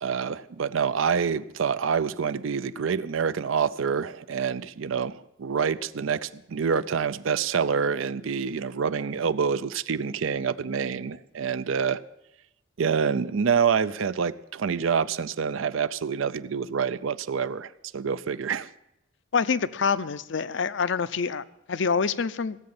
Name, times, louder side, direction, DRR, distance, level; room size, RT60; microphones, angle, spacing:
voice 1, 0.0-12.0 12.8-18.7, right 6 dB, 75° right, 16 dB, 0.5 m, -27 dB
voice 2, 19.3-22.6, left 5 dB, 60° left, 15 dB, 0.5 m, -26 dB
17.0 x 7.7 x 7.1 m, 0.89 s
head